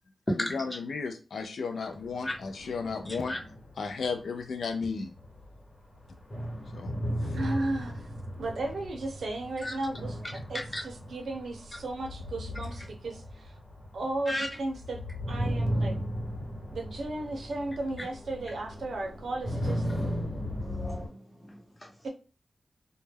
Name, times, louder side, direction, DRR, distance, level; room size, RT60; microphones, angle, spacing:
voice 1, 0.5-3.4 3.8-5.1 6.7-6.9, left 4 dB, 90° left, 0.4 m, -34 dB
sound 1, 1.9-4.7 5.1-21.1, equal, 60° left, 1.2 m, -36 dB
voice 2, 7.2-8.1 8.4-13.5 13.9-15.0 15.3-16.0 16.7-19.9 22.0-22.1, right 2 dB, 90° right, 0.6 m, -35 dB
voice 3, 20.6-22.1, left 1 dB, 25° left, 0.9 m, -36 dB
2.2 x 2.1 x 3.3 m
cardioid pair, 65°, 0 cm